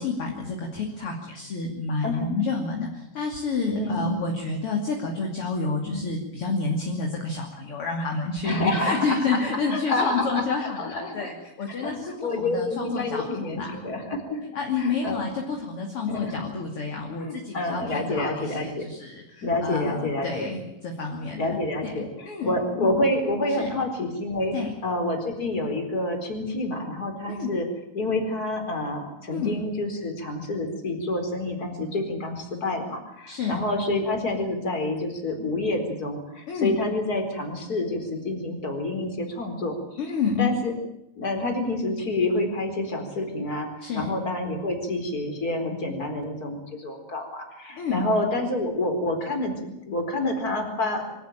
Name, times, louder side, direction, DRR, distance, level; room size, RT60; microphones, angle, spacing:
voice 1, 0.0-13.8 14.5-23.0 23.6-23.7 24.5-24.7 27.3-27.5 29.3-29.6 33.3-33.6 36.5-36.7 40.0-40.5 43.8-44.1 47.8-48.1, left 4 dB, 40° left, 1 dB, 3.2 m, -29 dB
voice 2, 3.7-4.3 5.9-6.0 8.4-11.3 11.8-14.4 14.8-15.3 16.1-16.4 17.2-18.8 19.4-20.5 21.4-24.5 24.8-27.7 27.9-40.7 41.1-43.7 43.9-51.0, left 2 dB, 25° left, 4 dB, 4.6 m, -28 dB
24.0 x 17.0 x 9.0 m, 0.86 s
omnidirectional pair, 4.2 m